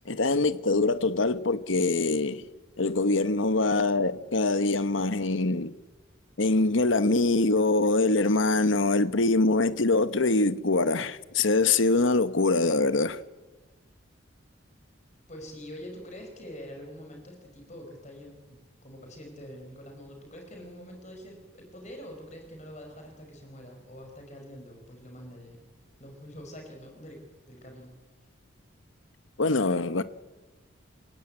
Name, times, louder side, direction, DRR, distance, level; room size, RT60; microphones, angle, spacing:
voice 1, 0.1-2.4 2.8-5.7 6.4-13.2 29.4-30.0, left 3 dB, 70° left, 1.1 m, -24 dB
voice 2, 15.3-25.7 26.0-28.0, equal, 35° left, 5.1 m, -45 dB
29.5 x 16.0 x 8.9 m
head